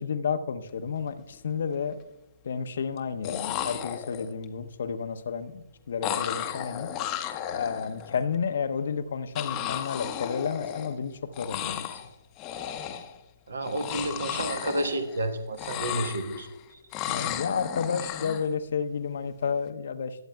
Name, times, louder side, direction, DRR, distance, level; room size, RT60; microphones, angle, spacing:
voice 1, 0.0-2.0 2.4-6.9 7.5-12.0 17.1-20.3, left 6 dB, 55° left, 10 dB, 0.7 m, -31 dB
sound 1, 0.8-1.0 1.3-1.9 3.0-3.1 3.2-4.4 6.0-8.2 9.3-11.1 11.3-12.1 12.4-13.2 13.6-15.3 15.5-16.5 16.9-18.5, left 10 dB, 20° left, 0.7 m, -34 dB
voice 2, 13.5-16.8, right 1 dB, 70° right, 9 dB, 1.2 m, -31 dB
20.0 x 8.0 x 2.3 m, 1.0 s
figure-of-eight pair, 135°, 0 cm